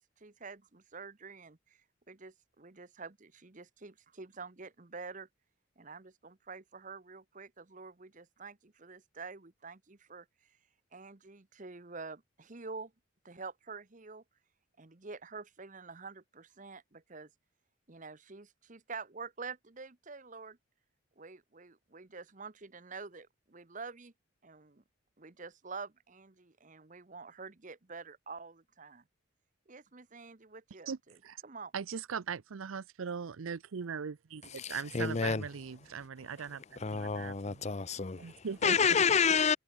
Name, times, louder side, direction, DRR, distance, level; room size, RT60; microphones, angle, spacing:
voice 1, 0.0-1.6 2.1-5.3 5.8-10.3 10.9-12.9 13.2-14.2 14.8-17.3 17.9-20.6 21.2-24.1 24.4-24.8 25.2-29.0 29.7-30.9 31.4-31.7, right 4 dB, 35° right, 1.0 m, -47 dB
voice 2, 30.9-31.4 31.7-37.6 38.2-39.0, right 6 dB, 80° right, 0.5 m, -40 dB
voice 3, 34.6-35.4 36.8-39.6, left 6 dB, 30° left, 0.6 m, -29 dB
head